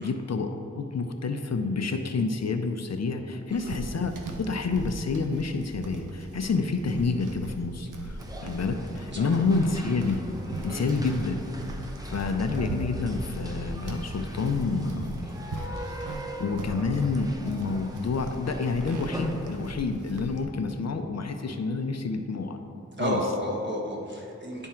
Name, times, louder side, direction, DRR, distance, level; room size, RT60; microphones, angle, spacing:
voice 1, 0.0-10.2 10.6-11.4 12.0-15.3 16.0-22.6 23.0-23.2, left 4 dB, 60° left, 6 dB, 0.5 m, -28 dB
sound 1, 3.5-20.4, right 1 dB, 90° right, 0.7 m, -39 dB
sound 2, 8.2-19.7, equal, 10° right, 0.6 m, -42 dB
voice 2, 23.0-24.7, equal, 35° right, -2 dB, 1.2 m, -32 dB
10.5 x 3.6 x 4.4 m, 2.6 s
wide cardioid pair, 80°, 30 cm